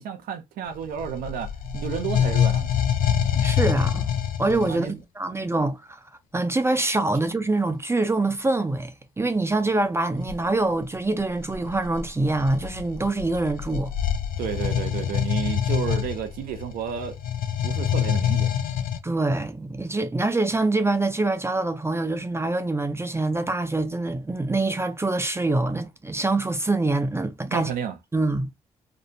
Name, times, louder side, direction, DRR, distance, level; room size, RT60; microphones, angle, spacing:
voice 1, 0.0-2.8 4.7-5.0 14.4-17.2 17.6-18.5 27.5-27.9, right 8 dB, 70° right, 0.5 m, -31 dB
sound 1, 0.7-4.8 10.2-10.4 11.2-19.0, left 9 dB, 65° left, 0.5 m, -26 dB
voice 2, 3.4-4.1 4.4-6.0 6.3-13.9 19.0-27.7 28.1-28.5, right 2 dB, 15° right, 0.5 m, -25 dB
2.5 x 2.1 x 2.6 m
hypercardioid pair, 45°, 15 cm